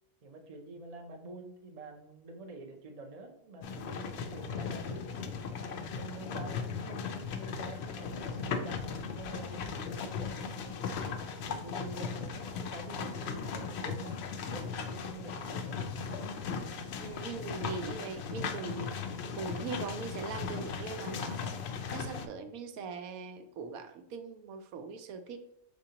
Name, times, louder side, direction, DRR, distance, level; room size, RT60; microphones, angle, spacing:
voice 1, 0.2-5.3 6.0-11.1 11.4-15.8, right 2 dB, 45° right, 4 dB, 0.5 m, -48 dB
sound 1, 3.6-22.3, left 5 dB, 65° left, 0.7 m, -37 dB
voice 2, 17.0-19.1 19.4-21.4 21.9-25.4, right 5 dB, 80° right, 7 dB, 1.0 m, -41 dB
5.1 x 3.7 x 2.8 m, 0.76 s
omnidirectional pair, 1.5 m